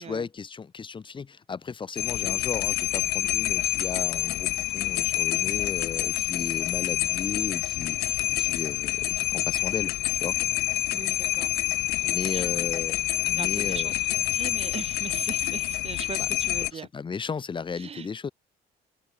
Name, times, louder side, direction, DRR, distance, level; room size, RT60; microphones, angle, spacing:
voice 1, 0.0-10.4 12.0-13.9 16.7-18.3, left 5 dB, 30° left, 1.5 m, -35 dB
sound 1, 2.0-16.7, left 18 dB, 70° left, 0.4 m, -27 dB
Wind instrument woodwind instrument, 3.4-6.7 7.2-10.8, right 13 dB, 70° right, 6.9 m, -69 dB
voice 2, 10.9-11.5 12.3-12.6 13.4-16.9 17.8-18.1, right 7 dB, 35° right, 0.8 m, -39 dB
open air
cardioid pair, 110°, 17 cm